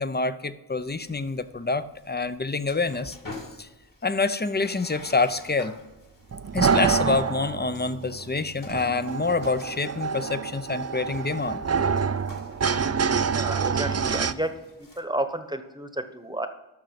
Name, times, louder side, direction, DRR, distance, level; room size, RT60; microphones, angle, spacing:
voice 1, 0.0-3.2 3.6-3.7 4.0-5.7 6.5-11.6, left 3 dB, 20° left, 13 dB, 0.6 m, -27 dB
sound 1, 0.8-15.0, left 2 dB, 45° left, 2.6 m, -48 dB
sound 2, 6.3-14.3, right 6 dB, 35° right, 0.5 m, -27 dB
voice 2, 13.3-14.5 14.8-16.5, right 1 dB, 10° right, 9 dB, 1.1 m, -31 dB
12.0 x 6.4 x 5.9 m, 1.0 s
cardioid pair, 40°, 44 cm